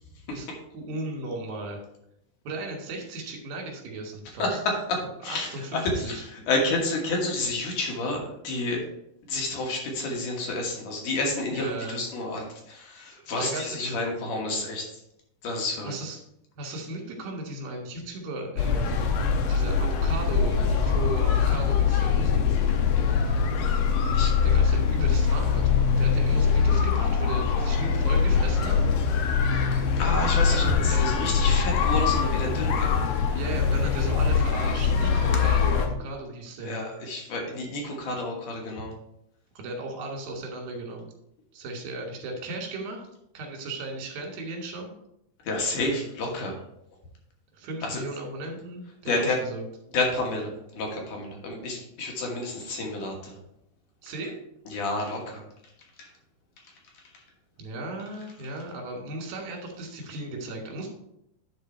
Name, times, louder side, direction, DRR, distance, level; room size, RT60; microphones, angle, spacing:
voice 1, 0.7-1.8 2.5-4.5 5.3-6.2 11.5-12.0 13.4-14.2 15.9-16.2 16.6-19.2 19.5-22.5 24.4-28.8 30.6-31.0 33.3-36.8 39.6-41.1 41.5-43.1 43.3-45.0 47.5-49.7 54.0-54.4 57.6-60.9, right 2 dB, 80° right, 1 dB, 3.5 m, -36 dB
voice 2, 4.4-8.8 9.2-15.0 15.4-15.9 19.3-19.4 24.1-24.3 30.0-33.0 36.6-38.9 45.4-46.6 47.8-48.0 49.1-49.4 49.9-53.4 54.7-55.4 56.0-56.1 56.9-57.0, left 2 dB, 65° left, 1 dB, 2.8 m, -30 dB
sound 1, 18.6-35.9, left 6 dB, 85° left, 2.7 m, -23 dB
10.5 x 4.5 x 4.4 m, 0.79 s
omnidirectional pair, 4.1 m